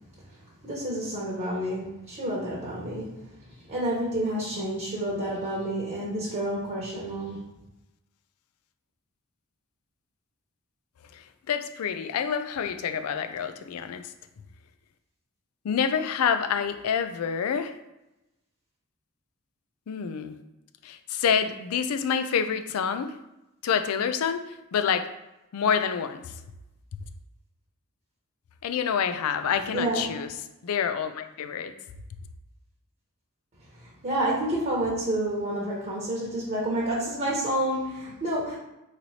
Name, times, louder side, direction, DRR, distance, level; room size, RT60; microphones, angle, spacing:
voice 1, 0.6-3.3 3.7-7.4 29.7-30.1 33.8-38.6, right 1 dB, 35° right, -6 dB, 1.0 m, -29 dB
voice 2, 11.1-14.1 15.6-17.8 19.9-20.4 20.8-23.2 23.6-25.1 25.5-26.3 28.6-30.3 30.6-31.7, left 7 dB, 85° left, 9 dB, 0.4 m, -27 dB
4.1 x 3.0 x 2.8 m, 0.95 s
head